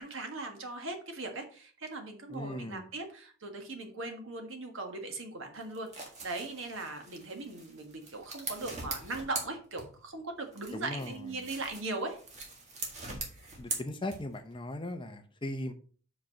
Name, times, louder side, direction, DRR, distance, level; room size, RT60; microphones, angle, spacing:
voice 1, 0.0-5.9 6.2-12.2, right 2 dB, 60° right, 5 dB, 1.6 m, -39 dB
voice 2, 2.3-2.9 10.7-11.3 13.6-15.7, left 1 dB, 20° left, 9 dB, 0.5 m, -38 dB
sound 1, 5.6-10.2 10.5-14.5, right 3 dB, 30° right, 1.7 m, -42 dB
5.8 x 5.2 x 5.3 m, 0.43 s
head